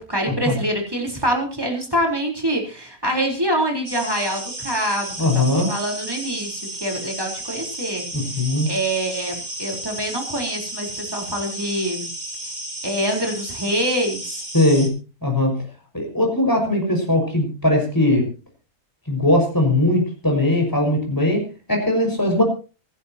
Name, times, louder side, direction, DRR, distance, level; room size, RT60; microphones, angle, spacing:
voice 1, 0.0-5.1 5.7-8.0 8.7-12.1 12.8-14.4, equal, 15° right, 1 dB, 4.2 m, -25 dB
sound 1, 3.9-14.9, right 1 dB, 35° right, 3.3 m, -33 dB
voice 2, 5.2-5.7 8.1-8.7 14.5-15.0 15.2-15.6 15.9-18.3 19.1-22.4, left 1 dB, 15° left, 2 dB, 6.1 m, -20 dB
25.5 x 11.5 x 3.0 m, 0.33 s
omnidirectional pair, 1.5 m